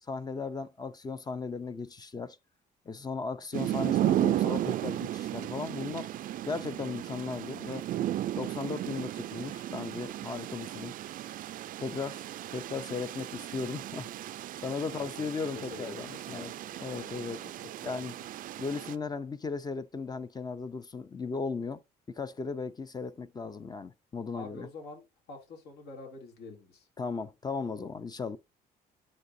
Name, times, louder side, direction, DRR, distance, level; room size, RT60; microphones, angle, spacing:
voice 1, 0.1-2.4 2.9-6.1 6.5-7.9 8.3-10.9 11.8-12.2 12.5-14.1 14.6-16.5 16.8-17.4 17.8-18.1 18.6-21.8 22.2-24.7 27.0-28.4, left 4 dB, 25° left, 0.6 m, -36 dB
sound 1, 3.5-18.9, right 13 dB, 55° right, 0.4 m, -34 dB
voice 2, 14.9-18.3 24.3-26.9, left 3 dB, 70° left, 2.7 m, -47 dB
9.7 x 3.9 x 2.6 m
cardioid pair, 110°, 17 cm